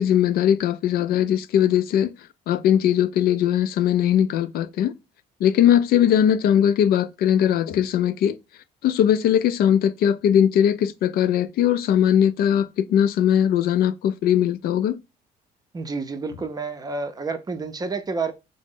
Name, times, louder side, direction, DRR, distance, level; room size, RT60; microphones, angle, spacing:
voice 1, 0.0-2.1 2.5-4.9 5.4-8.4 8.8-15.0, left 10 dB, 65° left, 0.4 m, -20 dB
voice 2, 15.7-18.3, right 4 dB, 20° right, 0.5 m, -29 dB
3.7 x 2.0 x 3.5 m
cardioid pair, 110°, 17 cm